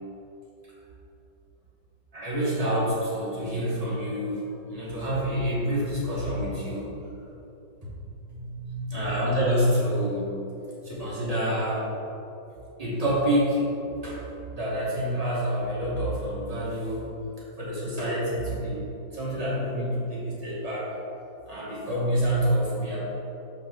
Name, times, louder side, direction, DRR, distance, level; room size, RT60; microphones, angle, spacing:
voice 1, 2.1-6.9 8.2-10.3 10.8-11.8 12.8-14.2 14.5-17.1 17.6-18.8 19.1-21.0 21.5-23.0, equal, 20° right, -8 dB, 1.3 m, -27 dB
5.5 x 4.8 x 3.6 m, 2.9 s
omnidirectional pair, 2.1 m